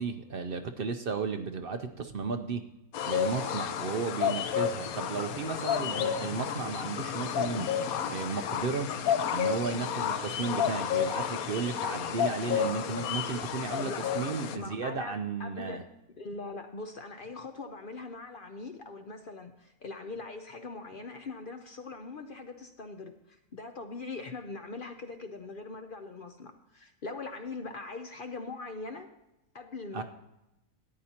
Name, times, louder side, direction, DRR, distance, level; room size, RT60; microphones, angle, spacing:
voice 1, 0.0-2.6 3.0-7.8 8.1-8.9 9.3-15.8 29.9-30.0, right 5 dB, 55° right, 7 dB, 0.6 m, -34 dB
sound 1, 2.9-14.6, left 8 dB, 75° left, 1.2 m, -31 dB
voice 2, 5.7-6.3 13.7-14.1 14.5-15.9 16.2-29.1 29.5-30.0, left 3 dB, 50° left, 6 dB, 0.7 m, -41 dB
13.5 x 9.6 x 2.8 m, 0.92 s
omnidirectional pair, 1.5 m